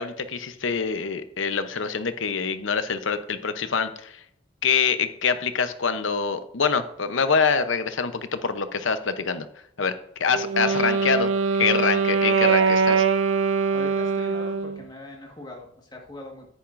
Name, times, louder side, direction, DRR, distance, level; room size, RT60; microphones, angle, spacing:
voice 1, 0.0-4.2 4.6-9.5 9.8-13.0, left 5 dB, 80° left, 10 dB, 0.8 m, -25 dB
Wind instrument woodwind instrument, 10.3-14.8, right 5 dB, 85° right, 0.6 m, -22 dB
voice 2, 13.7-16.5, left 2 dB, 20° left, 0 dB, 1.5 m, -41 dB
10.5 x 9.3 x 2.6 m, 0.71 s
head